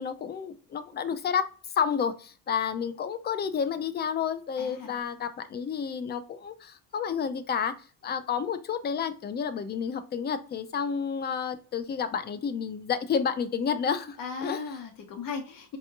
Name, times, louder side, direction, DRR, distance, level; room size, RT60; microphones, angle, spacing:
voice 1, 0.0-1.4 1.8-7.7 8.0-14.6, left 7 dB, 25° left, 0.4 m, -30 dB
voice 2, 4.6-5.0 14.2-15.8, left 5 dB, 50° left, 1.1 m, -37 dB
4.3 x 3.0 x 2.3 m
cardioid pair, 120°, 42 cm